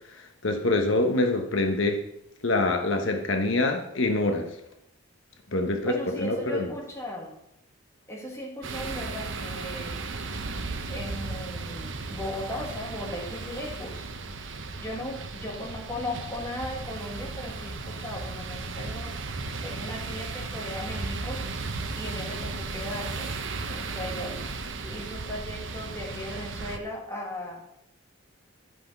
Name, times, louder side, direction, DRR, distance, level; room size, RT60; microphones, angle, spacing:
voice 1, 0.2-2.0 2.4-4.5 5.5-6.7, left 2 dB, 70° left, 4 dB, 1.0 m, -25 dB
voice 2, 5.9-7.4 8.1-10.0 10.9-14.1 14.8-19.2 19.6-21.5 21.9-23.3 23.7-24.5 24.8-27.7, left 1 dB, 15° left, -1 dB, 1.7 m, -37 dB
sound 1, 8.6-26.8, right 3 dB, 65° right, 0.9 m, -35 dB
11.5 x 5.8 x 5.3 m, 0.80 s
head